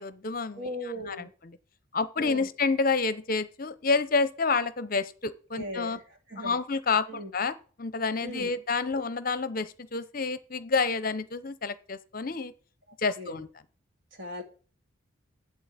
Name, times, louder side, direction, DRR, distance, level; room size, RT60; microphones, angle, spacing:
voice 1, 0.0-0.7 1.1-1.6 1.9-6.0 6.4-12.5 13.0-13.5, left 4 dB, 45° left, 14 dB, 0.7 m, -29 dB
voice 2, 0.6-1.3 2.2-2.5 5.5-6.0 6.3-6.6 7.1-7.3 8.2-8.5 13.2-13.4 14.2-14.4, equal, 65° right, 5 dB, 2.3 m, -38 dB
8.2 x 7.7 x 8.5 m, 0.40 s
head